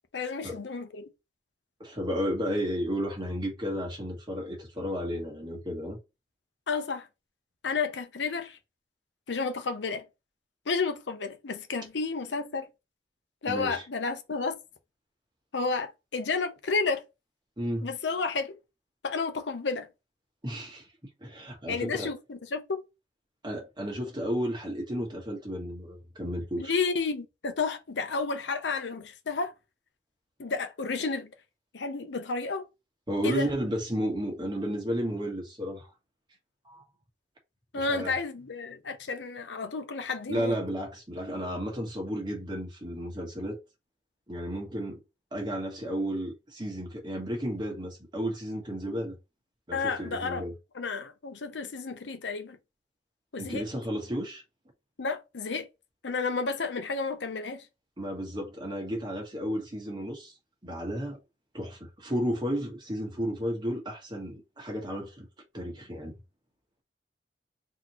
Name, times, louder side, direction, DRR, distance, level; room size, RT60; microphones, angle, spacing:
voice 1, 0.1-1.1 6.7-7.1 7.6-8.6 9.3-10.0 10.7-12.7 13.4-14.5 15.5-17.0 17.8-18.6 19.0-19.9 21.7-22.8 26.6-29.5 30.4-31.3 31.7-32.6 33.2-33.5 37.7-40.6 49.7-50.4 50.7-52.6 53.3-53.6 55.0-55.7 56.0-57.7, left 4 dB, 85° left, 0.7 m, -31 dB
voice 2, 1.8-6.0 13.5-13.8 17.6-17.9 20.4-20.9 21.2-22.1 23.4-26.7 33.1-35.9 36.6-36.8 37.7-38.1 40.3-43.6 44.3-45.0 45.3-49.2 49.7-50.5 53.4-54.4 58.0-60.3 60.6-61.2 61.5-65.3 65.5-66.1, equal, 25° right, 1.3 m, -33 dB
4.1 x 2.9 x 3.0 m
head